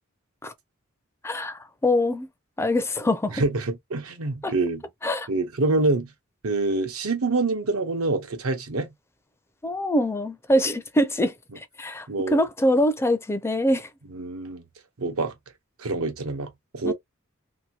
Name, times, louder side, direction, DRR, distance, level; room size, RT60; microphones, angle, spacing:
voice 1, 1.2-2.3 2.6-3.4 4.4-4.5 5.0-5.3 9.6-13.9 16.8-16.9, left 1 dB, 10° left, 0.4 m, -24 dB
voice 2, 3.3-4.8 5.3-6.1 6.4-8.9 12.1-12.4 14.1-14.6 15.0-15.3 15.8-16.9, right 3 dB, 85° right, 0.9 m, -26 dB
2.8 x 2.6 x 2.7 m
head